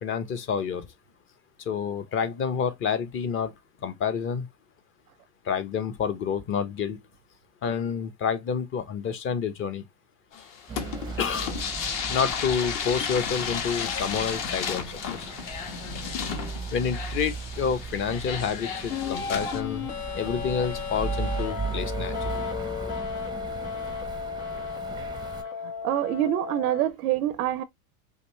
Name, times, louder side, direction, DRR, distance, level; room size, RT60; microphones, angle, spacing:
voice 1, 0.0-0.9 1.7-3.5 3.8-4.5 5.4-7.0 7.6-9.8 11.2-11.5 12.1-15.3 16.7-19.9 20.1-22.4, left 6 dB, 30° left, 0.8 m, -29 dB
sound 1, 10.3-19.6, left 7 dB, 45° left, 1.3 m, -33 dB
sound 2, 10.7-25.4, right 5 dB, 10° right, 0.6 m, -37 dB
sound 3, 18.9-26.9, left 7 dB, 70° left, 1.2 m, -34 dB
voice 2, 25.8-27.6, right 12 dB, 75° right, 0.6 m, -25 dB
5.2 x 2.7 x 3.1 m
hypercardioid pair, 115°, 45 cm